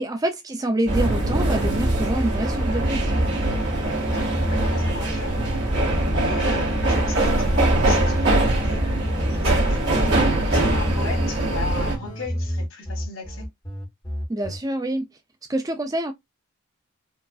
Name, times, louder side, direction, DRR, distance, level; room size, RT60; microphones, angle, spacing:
voice 1, 0.0-3.2 14.3-15.1 15.5-16.1, right 1 dB, 15° right, 0.4 m, -26 dB
sound 1, 0.9-11.9, right 1 dB, 55° right, 1.8 m, -22 dB
voice 2, 4.0-5.4 6.1-8.9 9.2-13.5, left 3 dB, 60° left, 1.9 m, -37 dB
sound 2, 4.1-14.6, equal, 20° left, 1.3 m, -31 dB
4.5 x 2.5 x 2.3 m
head